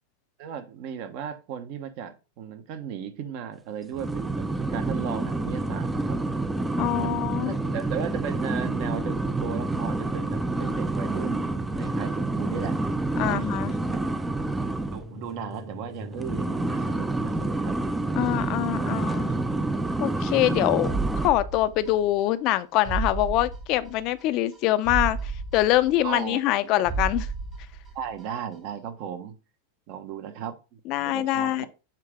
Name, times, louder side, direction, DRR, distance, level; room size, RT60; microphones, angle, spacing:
voice 1, 0.4-6.2 6.9-12.9 13.2-13.5 13.9-14.0 14.9-17.8 18.8-19.1 26.0-26.8 27.9-29.4 29.9-31.7, right 8 dB, 55° right, 1.1 m, -36 dB
sound 1, 3.9-15.1 16.1-21.3, right 2 dB, 5° right, 0.5 m, -28 dB
sound 2, 4.4-21.3, equal, 80° right, 3.9 m, -41 dB
voice 2, 6.8-7.5 13.2-13.7 18.2-19.3 20.0-20.9 21.2-27.3 30.9-31.7, left 15 dB, 50° left, 0.6 m, -24 dB
sound 3, 20.9-22.2 22.5-22.6 22.9-24.2 24.5-24.6 24.9-26.6 26.9-28.2 28.5-28.6, right 4 dB, 25° right, 1.5 m, -32 dB
7.4 x 3.7 x 3.6 m
hypercardioid pair, 120°, 0 cm